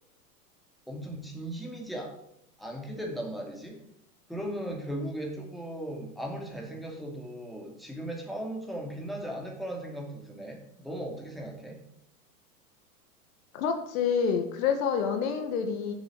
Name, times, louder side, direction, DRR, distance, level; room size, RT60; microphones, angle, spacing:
voice 1, 0.9-2.1 2.6-3.8 4.3-11.8, right 1 dB, ahead, -1 dB, 2.7 m, -37 dB
voice 2, 13.5-15.9, left 6 dB, 60° left, 5 dB, 1.8 m, -28 dB
7.8 x 7.2 x 8.1 m, 0.77 s
hypercardioid pair, 110°, 47 cm